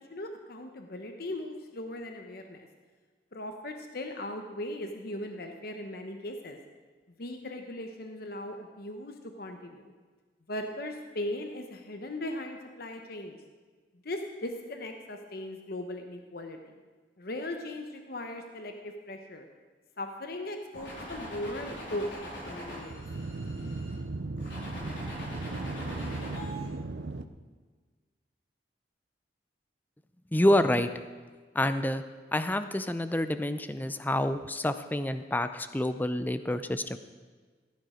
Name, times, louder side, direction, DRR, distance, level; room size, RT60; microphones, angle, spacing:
voice 1, 0.1-2.7 3.3-6.6 7.2-9.9 10.5-13.4 14.0-16.6 17.2-19.5 20.0-23.0, left 1 dB, 55° left, 5 dB, 1.0 m, -38 dB
sound 1, 20.7-23.9 24.4-26.7, equal, 70° left, 4.3 m, -42 dB
sound 2, 22.3-27.2, right 2 dB, 85° right, 0.7 m, -37 dB
voice 2, 30.3-30.9 31.5-32.0 32.3-37.0, left 1 dB, 10° left, 11 dB, 0.5 m, -28 dB
15.5 x 9.6 x 5.0 m, 1.4 s
head